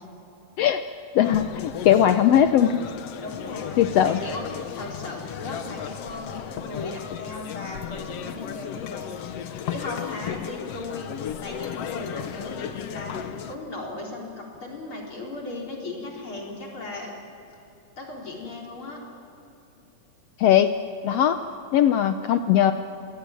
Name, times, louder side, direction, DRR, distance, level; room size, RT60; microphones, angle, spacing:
voice 1, 1.1-2.8 3.8-4.2 20.4-20.7 21.0-21.4 21.7-22.7, left 10 dB, 80° left, 9 dB, 1.4 m, -19 dB
sound 1, 1.2-13.6, left 9 dB, 65° left, 1.8 m, -35 dB
voice 2, 3.2-11.1 11.4-17.1 18.0-19.0, left 2 dB, 40° left, -1 dB, 4.6 m, -37 dB
27.0 x 20.0 x 9.0 m, 2.8 s
omnidirectional pair, 3.7 m